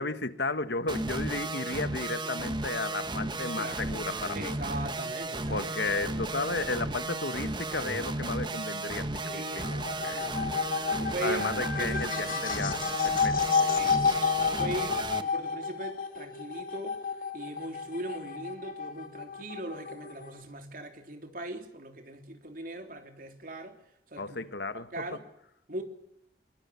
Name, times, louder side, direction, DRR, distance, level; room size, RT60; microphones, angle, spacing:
voice 1, 0.0-4.5 5.5-9.6 10.0-10.2 11.2-13.7 24.2-25.1, left 3 dB, 70° left, 1.6 m, -34 dB
sound 1, 0.9-15.2, right 2 dB, 25° right, 1.3 m, -34 dB
voice 2, 4.3-5.6 9.3-10.7 11.0-12.5 13.8-17.0 17.3-23.8 24.1-24.4 24.7-25.2 25.7-25.8, right 1 dB, 50° right, 3.3 m, -40 dB
sound 2, 9.1-20.4, left 6 dB, 50° left, 2.3 m, -31 dB
23.0 x 23.0 x 7.0 m
head